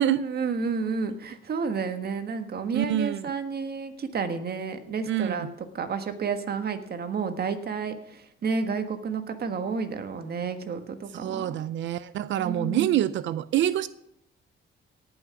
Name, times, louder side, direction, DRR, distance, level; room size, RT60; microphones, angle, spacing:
voice 1, 0.0-11.6 12.3-13.0, right 5 dB, 50° right, 8 dB, 1.5 m, -31 dB
voice 2, 2.7-3.3 5.1-5.5 11.1-13.9, right 11 dB, 70° right, 16 dB, 0.5 m, -26 dB
18.0 x 6.1 x 5.8 m, 0.78 s
cardioid pair, 90°, 20 cm